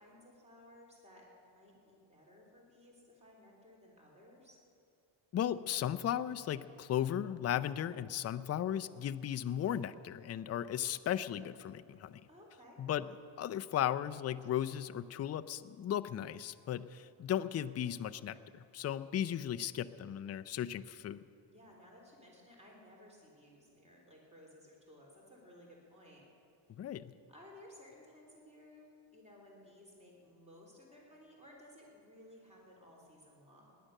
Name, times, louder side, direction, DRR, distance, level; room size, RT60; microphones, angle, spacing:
voice 1, 0.0-4.6 12.3-12.8 21.5-26.2 27.3-28.9 29.1-33.8, left 1 dB, 15° right, -1 dB, 3.5 m, -58 dB
voice 2, 5.3-12.2 12.8-13.1 13.4-21.2 26.8-27.1, left 10 dB, 35° left, 12 dB, 0.4 m, -36 dB
19.0 x 10.5 x 6.5 m, 2.6 s
cardioid pair, 130°, 48 cm